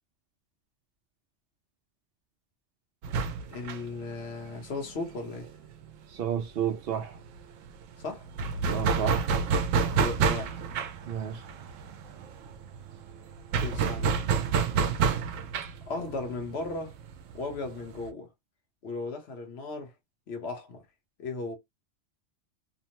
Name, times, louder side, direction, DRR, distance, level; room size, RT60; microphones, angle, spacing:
sound 1, 3.0-6.4 6.7-6.8 7.1-18.1, right 5 dB, 90° right, 0.9 m, -29 dB
voice 1, 3.5-5.5 8.0-8.3 10.0-10.6 13.6-14.2 15.9-16.9 17.3-18.3 18.8-19.9 20.3-20.8 21.2-21.6, left 3 dB, 60° left, 1.2 m, -36 dB
voice 2, 6.1-7.2 8.7-9.3 11.1-11.4, right 8 dB, 65° right, 0.6 m, -31 dB
2.9 x 2.0 x 2.9 m
omnidirectional pair, 1.3 m